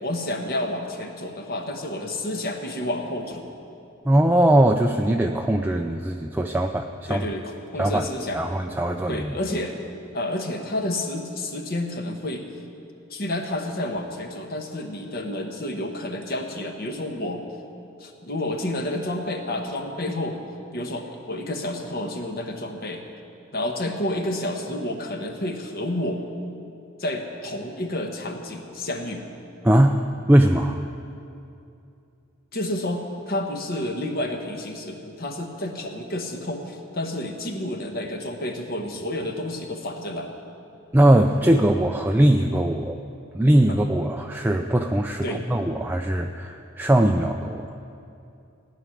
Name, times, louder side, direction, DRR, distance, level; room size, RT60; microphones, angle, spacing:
voice 1, 0.0-3.4 7.1-8.4 9.1-9.8 10.1-12.5 13.1-17.4 18.0-20.4 20.7-23.0 23.5-26.2 27.0-29.2 32.5-40.3 43.7-43.8 45.2-45.5, left 1 dB, 50° left, 4 dB, 1.4 m, -30 dB
voice 2, 4.1-7.3 7.8-8.1 8.3-9.4 29.6-30.0 30.3-30.8 40.9-43.0 43.3-47.7, right 1 dB, 10° right, 3 dB, 0.4 m, -20 dB
16.5 x 6.2 x 9.7 m, 2.6 s
head